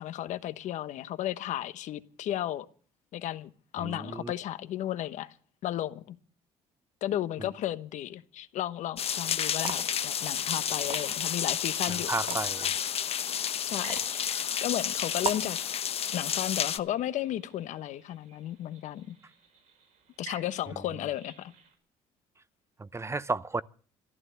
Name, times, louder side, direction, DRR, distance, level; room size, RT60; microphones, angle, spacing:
voice 1, 0.0-2.7 3.1-5.3 5.6-6.1 7.0-12.4 13.7-15.6 16.1-19.2 20.2-21.5, left 12 dB, 70° left, 1.2 m, -34 dB
voice 2, 3.8-4.3 12.1-12.7 22.8-23.6, right 3 dB, 20° right, 0.7 m, -32 dB
sound 1, 9.0-16.8, left 9 dB, 50° left, 1.0 m, -31 dB
sound 2, 9.6-9.9 10.8-11.4 12.1-12.5 13.7-14.2 15.2-15.5, right 6 dB, 40° right, 1.4 m, -36 dB
sound 3, 12.3-21.8, right 5 dB, 70° right, 5.2 m, -54 dB
14.5 x 11.0 x 7.8 m
supercardioid pair, 65°, 13 cm